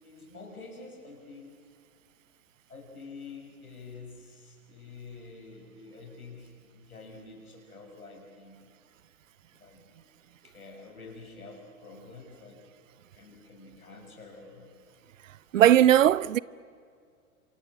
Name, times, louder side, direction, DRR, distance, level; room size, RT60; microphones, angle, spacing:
voice 1, 0.0-1.5 2.7-8.6 9.6-10.0 10.4-12.6 13.1-14.7, left 3 dB, 80° left, 6.8 m, -47 dB
voice 2, 15.5-16.4, right 11 dB, 60° right, 0.7 m, -18 dB
28.5 x 26.5 x 7.5 m
figure-of-eight pair, 105°, 43 cm